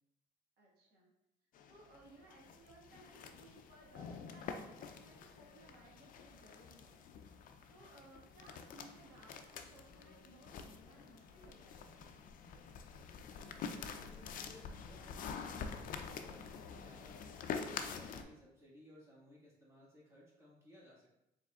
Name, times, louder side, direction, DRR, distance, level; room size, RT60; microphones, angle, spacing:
voice 1, 0.6-1.1 1.7-7.0 7.7-12.1 17.9-18.3, right 2 dB, 70° right, -3 dB, 1.5 m, -61 dB
sound 1, 1.5-18.2, left 6 dB, 55° left, 0.4 m, -47 dB
voice 2, 13.3-17.6 17.9-21.1, left 1 dB, 15° right, -5 dB, 1.5 m, -61 dB
4.7 x 3.7 x 2.4 m, 0.86 s
cardioid pair, 110°, 17 cm